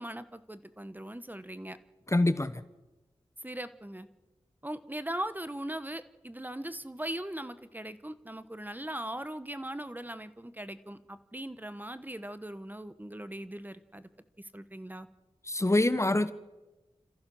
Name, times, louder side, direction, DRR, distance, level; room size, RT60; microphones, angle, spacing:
voice 1, 0.0-1.8 3.4-4.1 4.6-14.1 14.5-15.1, right 1 dB, 15° right, 13 dB, 1.1 m, -39 dB
voice 2, 2.1-2.6 15.5-16.3, left 2 dB, 25° left, 13 dB, 1.0 m, -25 dB
28.0 x 14.5 x 6.3 m, 1.1 s
cardioid pair, 45°, 11 cm